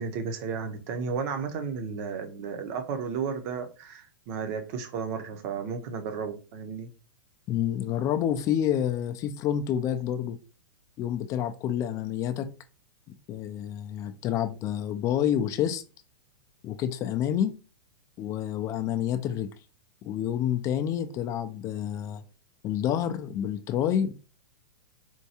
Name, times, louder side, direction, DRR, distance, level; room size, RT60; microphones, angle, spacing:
voice 1, 0.0-6.9, right 6 dB, 45° right, 0.7 m, -33 dB
voice 2, 7.5-10.4 11.0-12.5 13.3-15.8 16.6-17.6 18.2-19.5 20.0-22.2 22.6-24.1, left 10 dB, 25° left, 0.3 m, -28 dB
4.4 x 2.2 x 2.8 m
hypercardioid pair, 120°, 12 cm